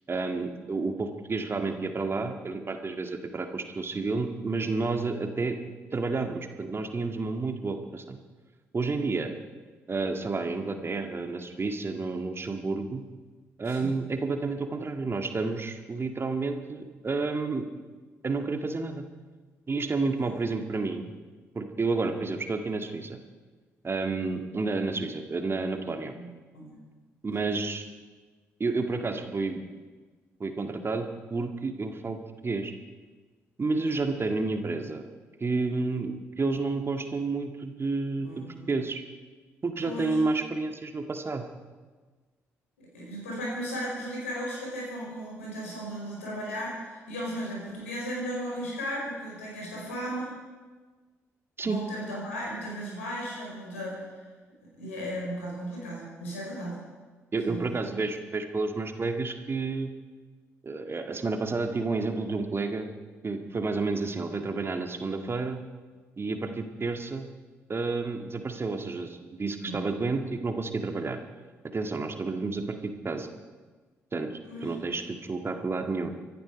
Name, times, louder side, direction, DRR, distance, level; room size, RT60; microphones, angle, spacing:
voice 1, 0.1-5.6 5.9-8.2 8.7-9.3 9.9-13.0 13.6-17.7 18.2-19.1 19.7-21.1 21.5-23.2 23.8-26.1 27.2-27.8 28.6-29.6 30.4-32.7 33.6-35.1 35.4-39.0 39.6-41.4 51.6-51.8 57.3-59.9 60.6-62.9 63.2-65.6 66.2-67.3 67.7-71.2 71.7-73.3 74.1-74.3 74.6-76.1, right 3 dB, 35° right, 6 dB, 1.8 m, -30 dB
voice 2, 13.6-14.0 20.2-20.3 26.1-26.7 33.8-33.9 38.2-38.7 39.8-40.2 42.9-50.3 51.6-54.2 54.8-56.8 57.5-57.8 69.6-69.8 74.5-74.7, equal, 90° left, -3 dB, 4.9 m, -36 dB
25.5 x 10.5 x 5.2 m, 1.4 s
hypercardioid pair, 40°, 7 cm